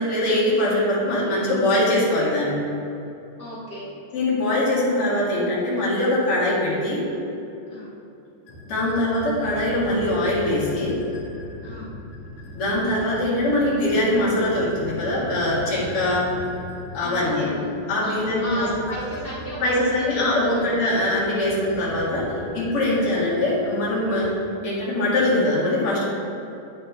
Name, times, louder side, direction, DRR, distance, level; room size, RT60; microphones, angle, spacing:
voice 1, 0.0-2.6 4.1-7.0 8.7-10.9 12.6-16.3 16.9-17.5 17.9-18.7 19.6-24.3 24.6-26.0, left 1 dB, 45° left, -8 dB, 2.4 m, -22 dB
voice 2, 3.4-3.9 7.7-8.0 11.6-11.9 16.0-16.3 16.9-17.6 18.0-20.6 22.8-23.1, equal, 70° right, -9 dB, 0.5 m, -34 dB
sound 1, 8.5-24.3, left 2 dB, 60° left, 2.0 m, -39 dB
9.3 x 5.9 x 3.3 m, 2.9 s
omnidirectional pair, 4.3 m